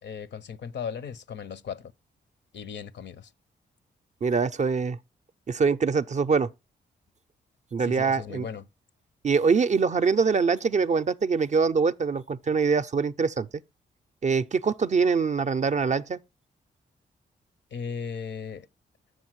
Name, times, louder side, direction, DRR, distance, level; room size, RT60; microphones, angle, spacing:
voice 1, 0.0-1.9 2.5-3.3 7.8-8.7 17.7-18.7, left 6 dB, 60° left, 0.6 m, -37 dB
voice 2, 4.2-5.0 5.5-6.5 7.7-8.5 9.2-13.5 14.2-16.2, right 5 dB, 35° right, 0.4 m, -24 dB
7.1 x 6.3 x 3.0 m
hypercardioid pair, 40°, 21 cm